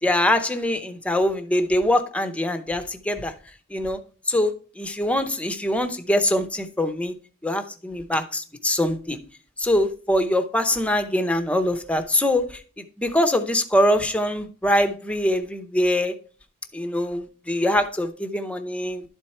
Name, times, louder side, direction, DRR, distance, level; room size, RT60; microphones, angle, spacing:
voice 1, 0.0-3.3 3.7-4.0 4.3-7.1 7.4-9.2 9.6-12.6 13.0-16.2 16.7-19.0, left 1 dB, 5° left, 8 dB, 0.7 m, -23 dB
11.5 x 4.5 x 4.3 m, 0.40 s
head